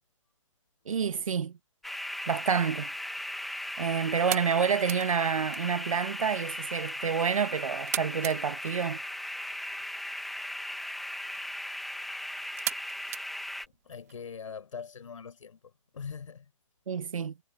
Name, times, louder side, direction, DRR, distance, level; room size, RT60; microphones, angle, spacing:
voice 1, 0.9-1.5 2.3-2.9 3.8-9.0 16.9-17.4, right 7 dB, 80° right, 1.1 m, -28 dB
sound 1, 1.8-13.7, left 1 dB, ahead, 1.0 m, -37 dB
sound 2, 2.8-14.1, right 15 dB, 30° right, 1.3 m, -42 dB
voice 2, 13.8-16.5, left 6 dB, 70° left, 6.8 m, -42 dB
hypercardioid pair, 165°, 17 cm